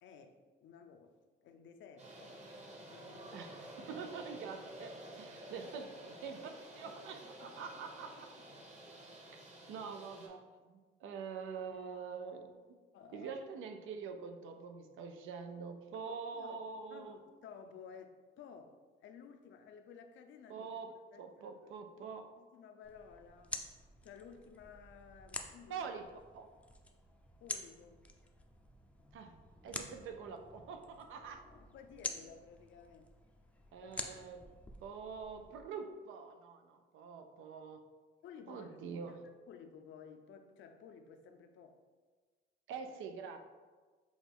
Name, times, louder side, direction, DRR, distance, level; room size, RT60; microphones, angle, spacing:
voice 1, 0.0-3.5 5.4-6.1 6.8-7.7 8.0-8.3 12.9-13.4 16.3-16.6 16.9-21.3 22.4-23.6 24.0-25.9 27.4-28.0 31.4-33.2 33.8-34.1 38.2-39.2 39.5-41.8, left 6 dB, 70° left, 6 dB, 0.5 m, -55 dB
sound 1, 2.0-10.3, right 1 dB, 35° right, 1.1 m, -51 dB
voice 2, 3.3-8.3 9.7-12.5 13.1-17.2 20.5-20.9 21.2-22.3 25.7-26.1 26.3-26.5 29.1-29.3 29.6-31.4 33.7-34.5 34.8-37.8 38.5-39.2 42.7-43.4, right 5 dB, 85° right, 6 dB, 0.5 m, -45 dB
sound 2, 22.8-35.6, left 1 dB, 5° left, 0.4 m, -48 dB
6.2 x 2.4 x 3.4 m, 1.4 s
cardioid pair, 90°, 20 cm